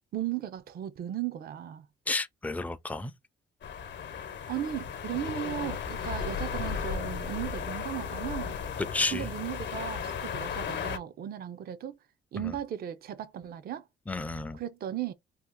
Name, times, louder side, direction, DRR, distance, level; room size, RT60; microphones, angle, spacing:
voice 1, 0.1-1.9 4.5-8.6 9.1-12.0 12.3-13.9 14.5-15.1, right 11 dB, 50° right, 0.5 m, -36 dB
voice 2, 2.1-3.1 8.9-9.3 12.4-12.6 14.1-14.6, left 3 dB, 5° left, 0.4 m, -32 dB
sound 1, 3.6-11.0, left 7 dB, 65° left, 0.8 m, -35 dB
2.8 x 2.4 x 3.6 m
cardioid pair, 90°, 20 cm